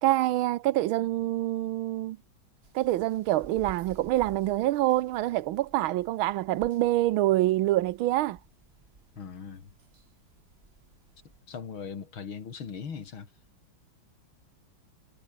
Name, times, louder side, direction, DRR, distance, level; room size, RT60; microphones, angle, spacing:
voice 1, 0.0-2.2 2.7-8.4, right 15 dB, 85° right, 1.5 m, -26 dB
sound 1, 2.6-11.4, right 3 dB, 30° right, 2.4 m, -54 dB
voice 2, 9.2-9.7 11.5-13.3, left 6 dB, 90° left, 3.3 m, -39 dB
omnidirectional pair, 2.2 m